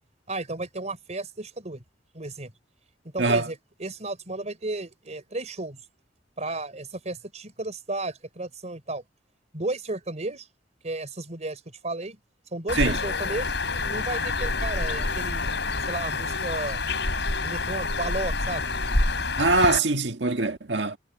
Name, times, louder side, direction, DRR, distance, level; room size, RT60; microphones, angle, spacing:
voice 1, 0.3-1.8 2.1-2.5 3.0-5.8 6.4-9.0 9.5-10.5 10.8-12.2 12.5-13.5 13.9-15.5 15.9-16.8 17.4-18.6, right 2 dB, 40° right, 4.3 m, -33 dB
Bird, 12.7-19.8, left 3 dB, 70° left, 5.9 m, -27 dB
voice 2, 19.4-21.0, right 3 dB, 75° right, 1.8 m, -23 dB
head